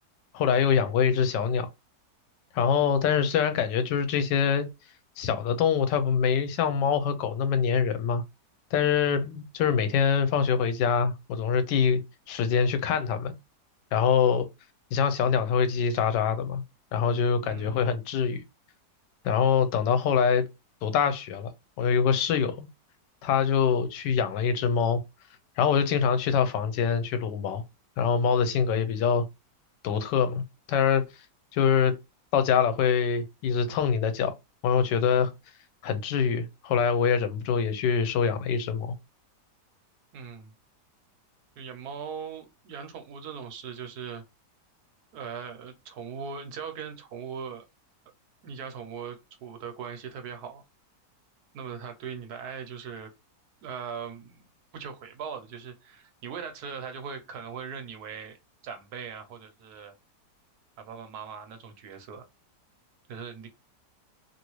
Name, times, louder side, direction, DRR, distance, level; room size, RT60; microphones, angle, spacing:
voice 1, 0.3-1.7 2.5-4.7 5.2-8.2 8.7-12.0 12.3-13.3 13.9-14.5 14.9-16.6 16.9-18.4 19.2-20.4 20.8-21.5 21.8-22.7 23.2-25.0 25.6-27.6 28.0-29.2 29.8-30.4 30.7-31.1 31.5-32.0 32.3-34.3 34.6-35.3 35.8-38.9, left 7 dB, 90° left, 1.3 m, -24 dB
voice 2, 17.4-17.8 40.1-40.5 41.5-44.2 45.1-47.6 48.4-50.6 51.5-53.1 53.6-54.4 54.7-58.4 58.6-59.9 60.8-62.2 63.1-63.5, right 6 dB, 70° right, 1.2 m, -39 dB
2.9 x 2.7 x 3.0 m
omnidirectional pair, 1.8 m